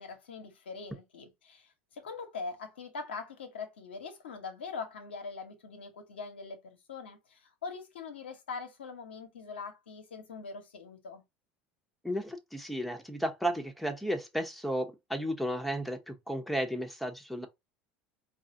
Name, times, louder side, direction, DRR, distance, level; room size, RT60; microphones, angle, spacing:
voice 1, 0.0-11.2, left 4 dB, 85° left, 1.0 m, -42 dB
voice 2, 12.0-17.5, equal, ahead, 0.9 m, -33 dB
4.7 x 2.5 x 2.6 m
hypercardioid pair, 75°, 6 cm